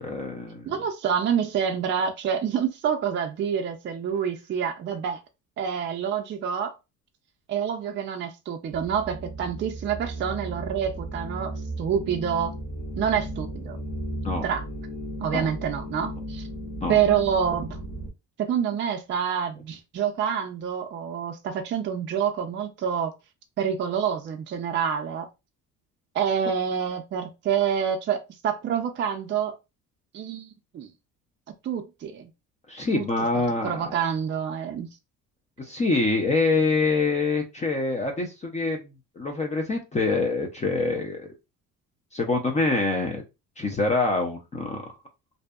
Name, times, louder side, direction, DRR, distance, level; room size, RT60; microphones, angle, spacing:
voice 1, 0.0-0.7 14.2-14.5 15.3-15.5 16.8-17.0 32.7-33.9 35.6-38.9 39.2-41.3 42.1-43.2 43.6-44.9, left 3 dB, 25° left, 0.4 m, -25 dB
voice 2, 0.6-5.2 5.6-6.7 7.5-12.5 13.0-13.8 14.4-14.6 15.2-16.5 16.9-17.8 18.4-23.1 23.6-25.3 26.1-29.6 30.1-30.5 30.7-30.9 31.6-32.3 32.9-33.0 33.6-34.9, right 8 dB, 35° right, 0.4 m, -27 dB
sound 1, 8.7-18.1, right 1 dB, 85° left, 0.9 m, -35 dB
2.6 x 2.1 x 2.3 m
cardioid pair, 115°, 31 cm